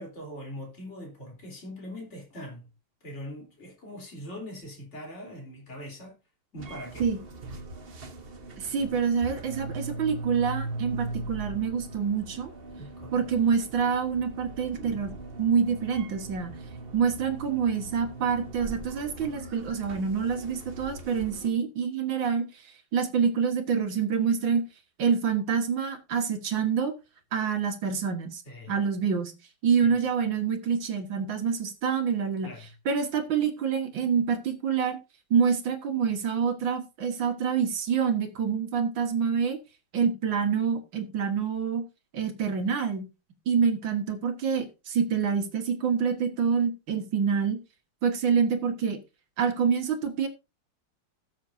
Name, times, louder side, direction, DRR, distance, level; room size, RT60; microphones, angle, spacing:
voice 1, 0.0-2.7 3.0-6.2 6.5-7.1 12.8-13.3 28.4-28.8 29.8-30.0 32.4-32.7, left 1 dB, 30° left, 3.9 m, -42 dB
sound 1, 6.6-21.5, right 2 dB, 35° right, 0.9 m, -40 dB
voice 2, 8.6-12.5 13.1-15.1 15.4-16.6 16.9-22.5 22.9-24.6 25.0-26.9 27.3-28.4 28.7-29.3 29.6-32.5 32.9-35.0 35.3-39.6 39.9-41.8 42.1-43.0 43.5-47.6 48.0-49.0 49.4-50.3, right 6 dB, 65° right, 2.1 m, -26 dB
17.0 x 7.3 x 2.7 m
omnidirectional pair, 2.3 m